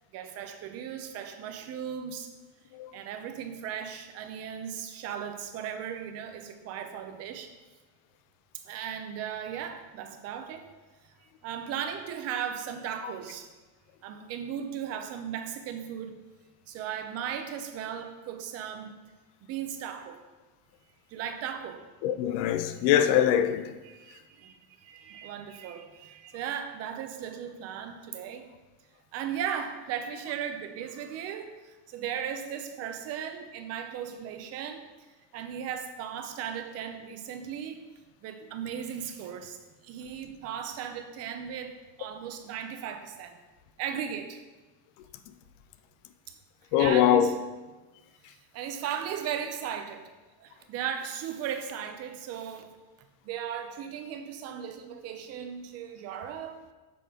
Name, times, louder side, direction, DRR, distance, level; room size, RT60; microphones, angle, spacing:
voice 1, 0.1-2.3 2.9-7.5 8.6-10.7 11.0-11.1 11.4-13.5 14.0-16.2 16.7-19.0 19.4-20.2 21.1-21.8 23.9-28.5 29.1-34.8 35.3-37.8 38.2-39.6 39.8-43.4 43.8-44.4 46.3-46.4 46.8-47.4 48.2-50.1 50.4-52.7 53.2-56.6, right 8 dB, 35° right, 0.6 m, -37 dB
voice 2, 22.0-23.7 46.7-47.4, left 10 dB, 55° left, 0.5 m, -23 dB
6.8 x 3.7 x 5.0 m
cardioid pair, 160°, 41 cm